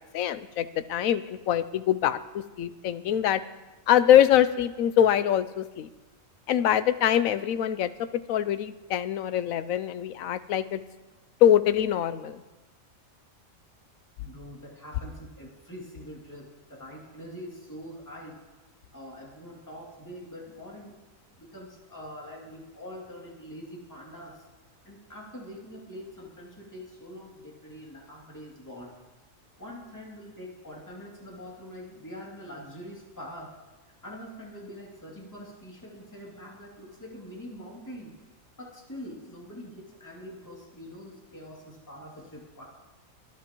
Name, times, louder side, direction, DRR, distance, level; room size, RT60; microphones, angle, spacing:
voice 1, 0.1-3.4 3.9-5.9 6.5-10.8 11.4-12.4, left 10 dB, 80° left, 13 dB, 1.0 m, -24 dB
voice 2, 14.2-18.4 18.9-20.9 21.3-24.4 24.8-28.9 29.6-33.5 34.0-38.1 38.6-42.6, equal, 15° left, -4 dB, 2.7 m, -44 dB
24.0 x 10.5 x 3.0 m, 1.2 s
omnidirectional pair, 1.4 m